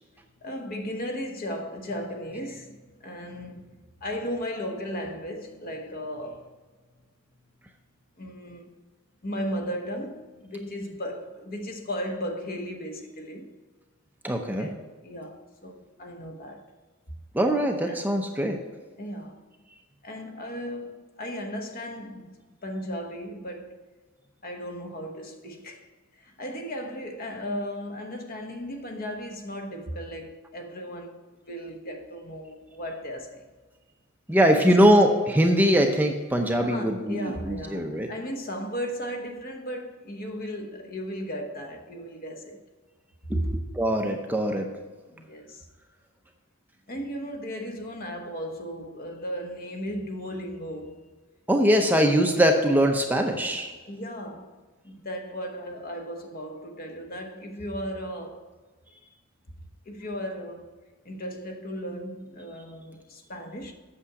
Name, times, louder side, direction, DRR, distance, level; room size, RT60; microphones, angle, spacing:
voice 1, 0.4-3.7 4.0-6.5 8.2-8.7 9.2-13.5 14.4-16.7 17.8-18.0 19.0-19.4 20.0-22.4 22.6-23.8 24.4-25.9 26.1-31.2 31.5-33.5 34.5-34.8 36.6-42.7 43.3-43.6 45.1-45.7 46.9-51.1 53.8-54.6 54.8-58.5 59.9-60.7 61.0-63.7, equal, 45° left, 1.1 m, -35 dB
voice 2, 14.2-14.7 17.3-18.6 34.3-38.1 43.3-44.7 51.5-53.7, equal, 10° right, 0.6 m, -22 dB
8.5 x 6.8 x 4.8 m
head